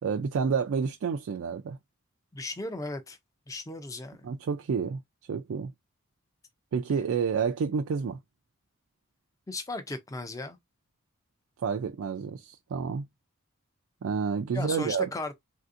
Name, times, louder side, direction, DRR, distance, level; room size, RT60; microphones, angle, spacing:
voice 1, 0.0-1.8 4.2-5.0 5.3-5.7 6.7-8.2 11.6-13.0 14.0-15.1, right 6 dB, 75° right, 0.3 m, -29 dB
voice 2, 2.3-3.2 3.5-4.3 9.5-10.6 14.5-15.3, left 2 dB, 15° left, 0.4 m, -36 dB
3.3 x 2.6 x 2.5 m
head